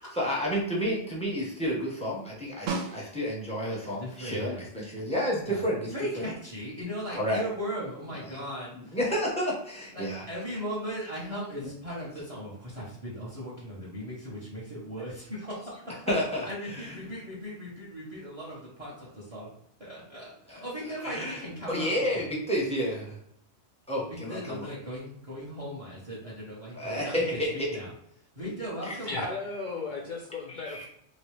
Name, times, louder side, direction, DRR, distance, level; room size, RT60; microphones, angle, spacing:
voice 1, 0.1-5.9 6.2-6.3 7.1-7.4 8.9-10.2 11.6-11.7 16.1-16.9 20.5-20.6 21.0-21.4 21.7-23.2 23.9-24.7 26.7-27.7 28.9-29.0 30.5-30.9, equal, 5° left, -4 dB, 0.8 m, -30 dB
Snare drum, 2.7-3.6 8.0-8.1, right 4 dB, 80° right, 1.0 m, -34 dB
voice 2, 4.0-4.7 5.5-5.6 5.9-9.0 9.9-16.0 16.4-19.5 19.8-22.3 24.1-27.4 27.7-27.9 28.4-29.2, equal, 30° right, -5 dB, 0.9 m, -38 dB
voice 3, 29.1-30.9, left 3 dB, 60° left, 0 dB, 0.5 m, -35 dB
3.0 x 2.8 x 3.1 m, 0.70 s
omnidirectional pair, 1.3 m